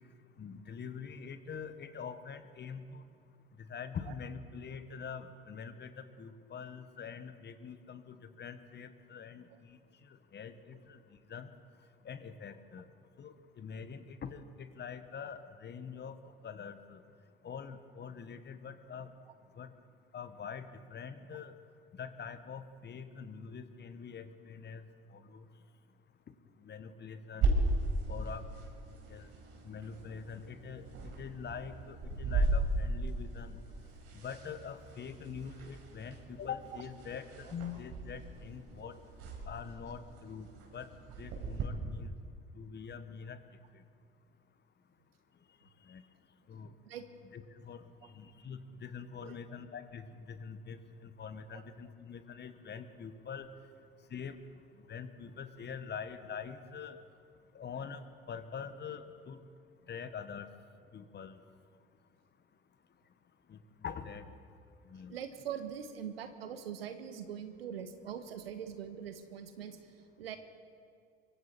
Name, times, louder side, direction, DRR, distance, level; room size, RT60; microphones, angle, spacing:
voice 1, 0.4-3.0 3.7-9.8 10.3-11.0 11.3-11.5 12.0-12.8 13.2-16.2 16.4-17.0 17.4-19.1 19.6-19.7 20.1-21.5 22.0-24.8 25.1-25.5 26.6-27.5 28.1-28.5 29.1-29.3 29.6-33.6 34.1-39.0 39.5-40.9 41.2-42.1 42.5-43.4 45.9-46.0 46.5-46.7 47.3-47.8 48.1-53.5 54.1-54.4 54.9-57.0 57.5-59.4 59.9-60.5 60.9-61.4 63.5-64.2 64.9-65.2, left 6 dB, 35° left, 10 dB, 1.6 m, -44 dB
sound 1, 27.4-41.6, right 2 dB, 55° right, 4.8 m, -37 dB
voice 2, 65.1-69.8 70.2-70.4, right 8 dB, 80° right, 9 dB, 1.5 m, -42 dB
24.0 x 24.0 x 4.5 m, 2.2 s
figure-of-eight pair, 60°, 30 cm